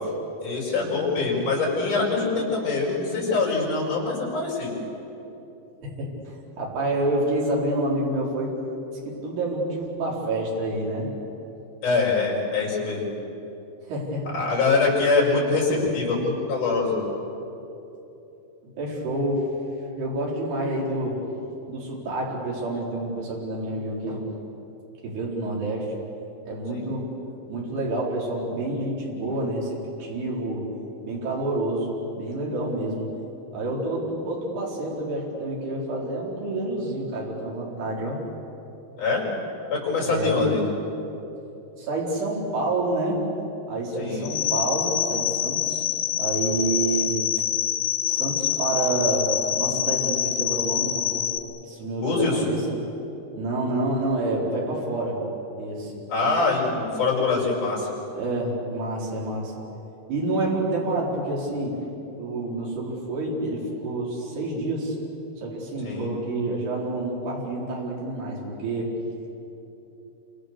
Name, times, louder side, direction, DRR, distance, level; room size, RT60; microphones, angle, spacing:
voice 1, 0.4-4.7 11.8-13.0 14.3-17.0 26.7-26.9 39.0-39.2 39.7-40.6 44.0-44.3 52.0-52.5 56.1-57.9 65.8-66.1, left 3 dB, 45° left, -4 dB, 7.1 m, -24 dB
voice 2, 5.8-8.5 9.1-11.1 13.8-14.3 18.6-19.4 20.0-21.2 21.7-24.3 25.0-25.9 26.5-27.1 27.5-30.7 31.0-33.1 33.5-38.2 40.1-40.6 41.8-43.2 43.7-45.9 46.2-47.2 48.0-51.3 51.6-52.7 53.4-55.2 55.6-56.0 58.1-59.5 60.1-61.8 62.2-65.0 65.4-68.9, right 2 dB, 70° right, -4 dB, 6.3 m, -28 dB
sound 1, 44.2-51.4, left 10 dB, 70° left, 2.6 m, -26 dB
28.5 x 26.0 x 6.8 m, 3.0 s
omnidirectional pair, 4.9 m